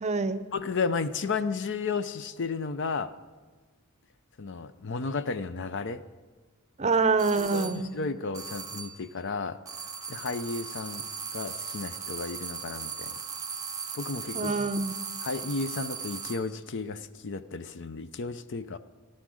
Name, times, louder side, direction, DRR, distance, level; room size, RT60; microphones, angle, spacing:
voice 1, 0.0-0.4 6.8-7.9 14.3-14.9, right 4 dB, 30° right, 12 dB, 0.6 m, -26 dB
voice 2, 0.5-3.1 4.4-6.0 7.4-9.6 10.1-13.2 13.9-14.5 15.2-18.8, left 4 dB, 55° left, 13 dB, 0.6 m, -33 dB
sound 1, 7.2-7.9 8.3-9.1 9.7-16.5, right 5 dB, 15° right, 1.0 m, -38 dB
14.0 x 11.5 x 6.3 m, 1.3 s
head